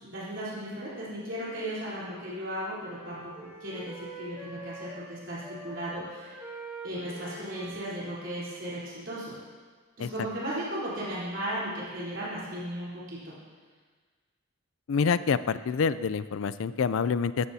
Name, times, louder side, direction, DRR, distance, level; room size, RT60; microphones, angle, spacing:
voice 1, 0.0-3.3 3.6-6.4 6.8-9.4 10.0-13.3, right 1 dB, 60° right, -9 dB, 3.8 m, -36 dB
Wind instrument woodwind instrument, 1.4-5.1 5.4-9.5, right 2 dB, 15° right, 3.1 m, -46 dB
voice 2, 14.9-17.5, left 5 dB, 70° left, 15 dB, 0.4 m, -27 dB
14.5 x 13.0 x 2.8 m, 1.5 s
head